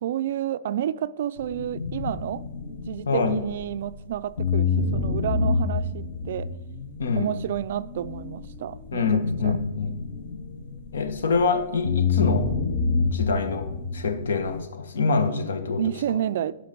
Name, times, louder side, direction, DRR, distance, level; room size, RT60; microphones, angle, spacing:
voice 1, 0.0-2.4 2.9-6.5 7.2-9.5 15.8-16.5, right 11 dB, 50° right, 0.3 m, -30 dB
sound 1, 1.4-4.0 4.4-11.4 11.8-14.6, left 4 dB, 45° left, 0.8 m, -28 dB
voice 2, 3.1-3.4 7.0-7.3 8.9-9.9 10.9-12.5 13.0-15.8, left 4 dB, 85° left, 1.3 m, -25 dB
11.5 x 5.1 x 5.2 m
hypercardioid pair, 170°, 0 cm